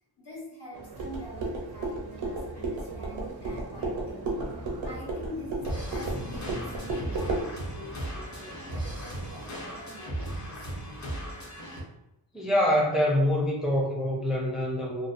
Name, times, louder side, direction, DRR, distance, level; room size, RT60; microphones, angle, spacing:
voice 1, 0.2-10.7, left 1 dB, 60° left, -6 dB, 1.2 m, -44 dB
sound 1, 0.7-9.8, right 3 dB, 55° right, 0.5 m, -46 dB
sound 2, 1.0-7.5, right 2 dB, 90° right, 0.7 m, -33 dB
sound 3, 5.6-11.8, right 1 dB, 40° left, 0.7 m, -37 dB
voice 2, 12.3-15.1, left 1 dB, ahead, -2 dB, 0.4 m, -25 dB
2.5 x 2.2 x 2.4 m, 0.87 s
wide cardioid pair, 90°, 46 cm